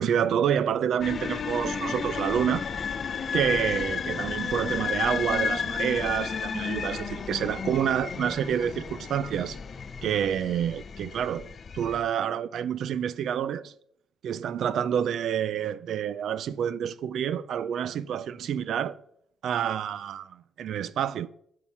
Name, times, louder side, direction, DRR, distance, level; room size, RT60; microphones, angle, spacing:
voice 1, 0.0-2.7 3.3-9.6 10.0-11.5 11.7-13.7 14.2-19.0 19.4-21.3, right 9 dB, 60° right, 0.4 m, -28 dB
sound 1, 1.0-12.0, left 6 dB, 35° left, 0.5 m, -32 dB
11.0 x 5.8 x 5.6 m
cardioid pair, 150°, 0 cm